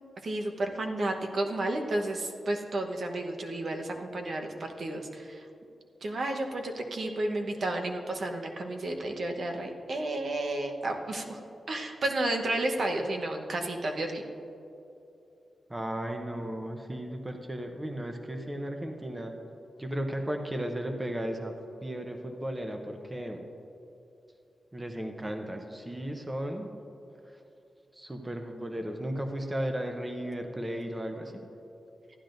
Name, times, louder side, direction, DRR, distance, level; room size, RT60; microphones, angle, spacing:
voice 1, 0.2-5.5 6.0-11.4 11.7-14.2, right 1 dB, 60° right, 3 dB, 1.0 m, -32 dB
voice 2, 15.7-19.3 19.8-21.5 21.8-23.4 24.7-26.7 27.9-31.4, right 1 dB, 15° right, 4 dB, 0.7 m, -35 dB
14.5 x 10.5 x 2.6 m, 2.8 s
wide cardioid pair, 105°, 0 cm